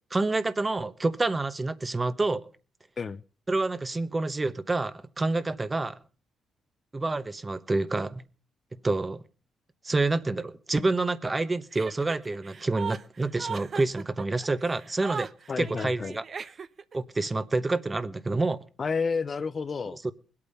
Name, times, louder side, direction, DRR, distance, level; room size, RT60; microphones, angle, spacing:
voice 1, 0.1-2.5 3.5-6.0 6.9-8.2 8.7-9.2 9.8-15.3 15.6-16.2 16.9-18.6 20.0-20.1, right 3 dB, 20° right, 1.0 m, -28 dB
Chuckle chortle, 11.7-16.9, right 6 dB, 45° right, 0.8 m, -38 dB
voice 2, 15.5-16.2 18.8-20.0, left 5 dB, 40° left, 0.6 m, -30 dB
21.0 x 8.7 x 5.6 m
cardioid pair, 90°, 0 cm